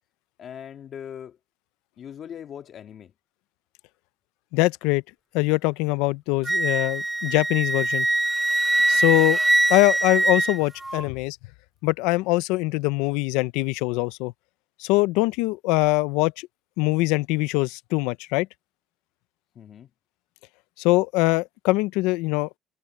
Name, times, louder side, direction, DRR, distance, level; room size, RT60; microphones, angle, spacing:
voice 1, 0.4-1.4 2.0-3.1 8.9-9.2 19.6-19.9, left 9 dB, 55° left, 1.9 m, -40 dB
voice 2, 4.5-5.0 5.3-8.1 8.9-9.4 9.7-11.4 11.8-14.3 14.8-16.5 16.8-18.5 20.8-22.5, left 21 dB, 85° left, 0.7 m, -23 dB
Wind instrument woodwind instrument, 6.5-11.0, right 2 dB, 10° right, 0.4 m, -23 dB
supercardioid pair, 80°, 0 cm